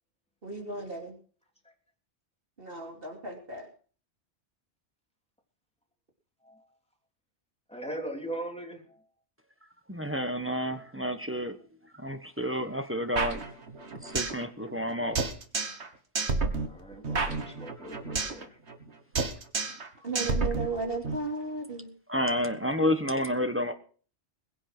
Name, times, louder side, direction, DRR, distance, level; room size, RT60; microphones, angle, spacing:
voice 1, 0.4-1.2 2.6-3.7 10.1-10.2 20.0-21.9, right 3 dB, 55° right, 1 dB, 3.3 m, -35 dB
voice 2, 7.7-9.0 14.0-14.2 16.4-18.6, right 1 dB, 5° left, 1 dB, 3.3 m, -40 dB
voice 3, 9.9-11.6 11.9-13.5 13.9-15.2 22.1-23.7, equal, 10° right, 7 dB, 1.2 m, -30 dB
sound 1, 13.2-14.4 14.7-14.8 15.2-15.9 16.2-18.4 18.7-18.9 19.2-19.9 20.2-21.2, right 4 dB, 75° right, 2.0 m, -30 dB
21.5 x 7.9 x 6.1 m, 0.43 s
omnidirectional pair, 1.2 m